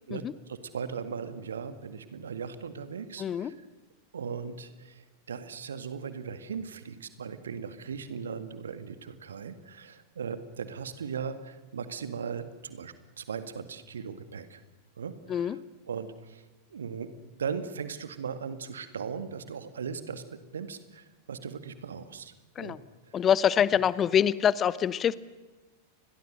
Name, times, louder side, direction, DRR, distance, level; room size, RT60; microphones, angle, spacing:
voice 1, 0.1-3.5 4.1-14.6 15.0-15.6 15.9-16.4 16.7-17.1 17.4-20.2 20.5-22.8 23.1-23.2, right 6 dB, 70° right, 11 dB, 2.0 m, -38 dB
voice 2, 3.2-3.5 15.3-15.6 22.6-22.8 23.1-25.1, left 9 dB, 25° left, 19 dB, 0.9 m, -25 dB
30.0 x 22.5 x 6.6 m, 1.2 s
figure-of-eight pair, 90°, 0 cm